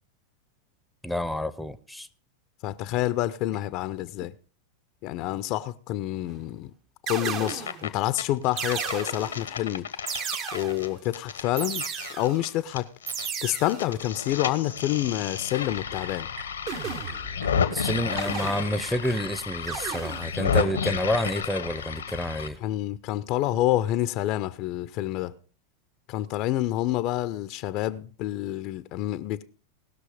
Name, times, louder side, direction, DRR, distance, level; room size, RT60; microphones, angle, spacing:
voice 1, 1.0-2.1 4.2-4.3 17.7-22.6, equal, ahead, 0.8 m, -29 dB
voice 2, 2.6-4.3 5.0-6.7 7.1-9.9 10.5-12.9 13.4-16.3 22.6-25.3 26.1-29.5, left 14 dB, 50° left, 0.7 m, -28 dB
sound 1, 6.3-6.6 7.1-7.9 8.6-9.5 10.1-11.0 11.6-12.5 13.1-13.9 16.7-17.4 18.2-19.0 19.7-20.4, right 7 dB, 45° right, 1.3 m, -34 dB
sound 2, 7.5-7.9 8.2-13.3 13.5-22.5, left 7 dB, 85° left, 1.2 m, -31 dB
sound 3, 15.8-21.5, right 2 dB, 60° right, 7.2 m, -47 dB
19.0 x 6.4 x 5.0 m
hypercardioid pair, 95°, 0 cm